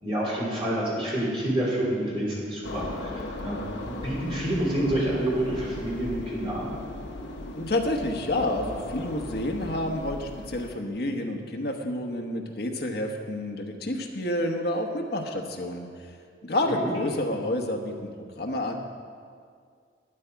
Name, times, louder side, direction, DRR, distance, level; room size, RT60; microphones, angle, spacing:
voice 1, 0.0-3.1 3.4-6.7 16.8-16.9, right 1 dB, 30° right, -6 dB, 3.3 m, -28 dB
sound 1, 2.6-10.7, left 1 dB, 75° left, 0.9 m, -38 dB
voice 2, 7.5-15.9 16.4-17.9 18.4-18.7, left 1 dB, 55° left, 2 dB, 1.1 m, -29 dB
12.5 x 9.3 x 4.6 m, 2.1 s
head